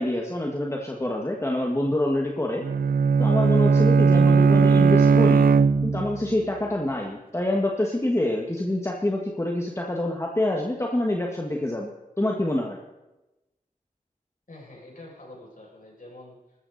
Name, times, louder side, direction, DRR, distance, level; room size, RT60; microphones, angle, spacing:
voice 1, 0.0-2.6 3.2-5.4 5.8-11.9 12.2-12.8, left 1 dB, 20° left, 0 dB, 1.7 m, -26 dB
Bowed string instrument, 2.6-6.3, right 5 dB, 90° right, 0.5 m, -18 dB
voice 2, 14.5-16.6, left 1 dB, 65° left, -4 dB, 6.6 m, -46 dB
20.5 x 13.5 x 4.1 m, 1.0 s
wide cardioid pair, 80°, 15 cm